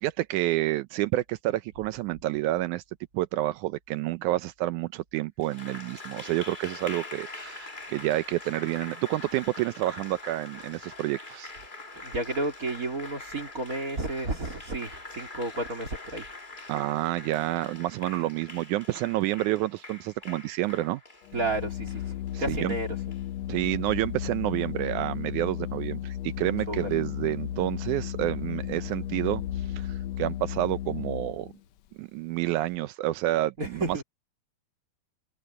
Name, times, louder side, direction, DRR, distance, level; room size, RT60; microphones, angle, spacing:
voice 1, 0.0-2.8 3.1-11.5 16.7-21.0 22.3-22.8 23.5-31.5 32.0-34.0, right 16 dB, 85° right, 2.1 m, -29 dB
Applause, 5.4-23.2, left 3 dB, 20° left, 1.6 m, -44 dB
voice 2, 12.0-16.2 21.3-22.9 26.7-26.9 33.6-34.0, right 2 dB, 30° right, 3.2 m, -32 dB
Organ, 21.2-31.6, left 11 dB, 70° left, 1.8 m, -34 dB
omnidirectional pair, 3.5 m